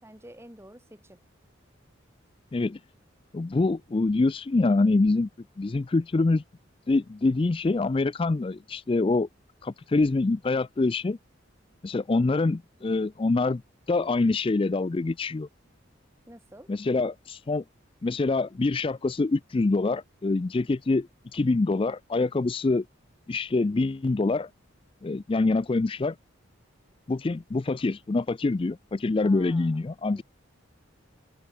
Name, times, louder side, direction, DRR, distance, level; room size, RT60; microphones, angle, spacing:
voice 1, 0.0-1.2 16.3-16.7 29.2-30.2, right 1 dB, 15° right, 2.1 m, -50 dB
voice 2, 3.3-5.3 5.6-6.4 6.9-9.3 9.6-11.2 11.8-13.6 13.9-15.5 16.7-17.6 18.0-22.8 23.3-24.5 25.0-26.2 27.1-30.2, left 3 dB, 25° left, 0.3 m, -25 dB
head